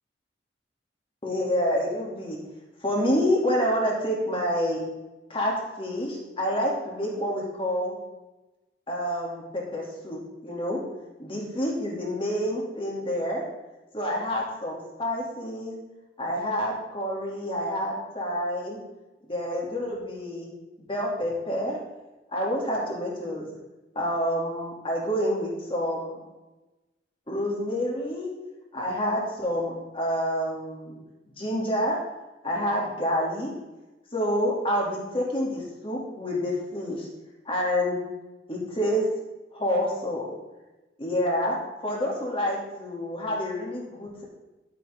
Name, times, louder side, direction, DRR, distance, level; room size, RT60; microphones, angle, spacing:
voice 1, 1.2-2.4 2.8-4.8 5.3-8.0 8.9-10.8 11.2-13.4 13.9-15.7 16.2-18.8 19.3-20.5 20.9-21.8 22.3-23.5 23.9-26.2 27.3-28.3 28.7-31.0 31.4-32.0 32.4-33.5 34.1-37.1 37.4-38.0 38.5-39.1 39.5-40.3 41.0-41.6 41.8-44.2, equal, 30° left, -2 dB, 2.8 m, -28 dB
11.5 x 9.2 x 3.7 m, 1.1 s
head